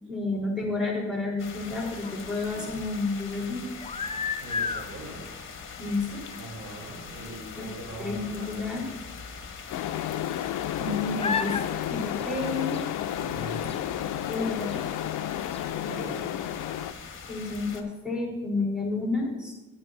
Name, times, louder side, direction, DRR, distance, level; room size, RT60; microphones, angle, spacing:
voice 1, 0.0-3.7 5.8-6.3 7.6-7.7 8.0-8.8 10.8-11.6 11.9-12.9 14.3-14.8 17.3-19.5, left 3 dB, 5° right, -3 dB, 3.7 m, -30 dB
sound 1, 1.4-17.8, left 5 dB, 40° left, 1.3 m, -42 dB
sound 2, 1.7-2.7 3.6-4.9 5.9-6.0 6.3-6.4 6.9-7.0 7.2-7.3 9.0-9.1 10.0-10.8 11.2-11.7 12.1-12.9 13.7-13.8 14.7-14.8 15.2-15.3 15.5-15.6, left 5 dB, 20° left, 0.5 m, -33 dB
voice 2, 4.4-5.2 6.4-8.8 13.2-13.8 15.8-16.3, right 1 dB, 65° right, -1 dB, 3.2 m, -41 dB
sound 3, 9.7-16.9, left 12 dB, 80° left, 0.5 m, -32 dB
12.0 x 11.0 x 2.5 m, 1.1 s
cardioid pair, 90°, 30 cm